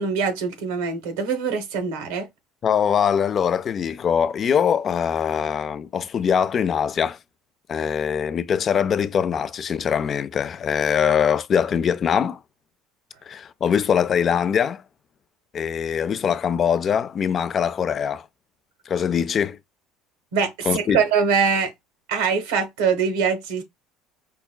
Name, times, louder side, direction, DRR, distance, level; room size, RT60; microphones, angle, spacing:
voice 1, 0.0-2.3 20.3-21.7 22.1-23.6, right 6 dB, 85° right, 1.1 m, -23 dB
voice 2, 2.6-7.2 7.7-12.4 13.3-14.8 15.5-18.3 18.9-19.6 20.7-21.0, left 7 dB, 40° left, 0.3 m, -22 dB
4.7 x 2.2 x 2.2 m
supercardioid pair, 90°, 0 cm